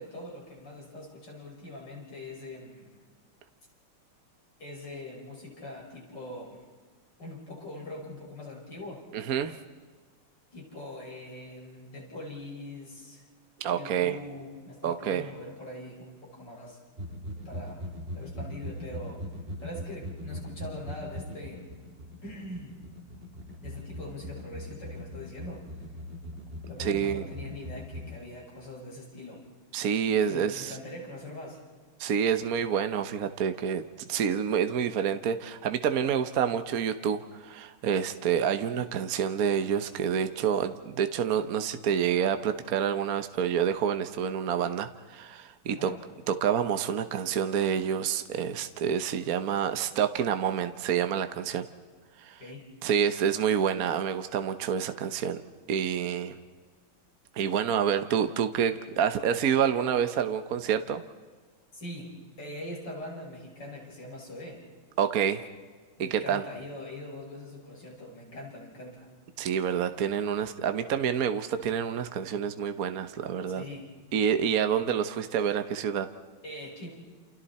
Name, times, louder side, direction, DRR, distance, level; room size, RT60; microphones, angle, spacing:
voice 1, 0.0-3.0 4.6-6.6 7.2-9.0 10.5-13.2 13.7-16.8 17.4-17.9 18.1-19.2 19.6-21.8 22.2-22.8 23.6-25.7 26.6-29.4 30.3-31.6 45.8-46.0 52.4-52.7 61.7-62.1 62.4-64.6 66.0-69.1 73.5-73.9 76.4-76.9, left 1 dB, 50° left, -2 dB, 6.4 m, -42 dB
voice 2, 9.1-9.5 13.6-14.2 14.8-15.3 26.8-27.2 29.7-30.8 32.0-33.8 34.1-45.9 46.3-51.7 52.2-52.4 52.8-55.4 55.7-56.3 57.4-61.0 65.0-65.4 66.0-66.4 69.4-73.6 74.1-76.1, right 8 dB, 55° right, 9 dB, 1.1 m, -28 dB
sound 1, 17.0-28.2, equal, 25° right, 2.1 m, -40 dB
29.0 x 29.0 x 4.3 m, 1.5 s
omnidirectional pair, 2.4 m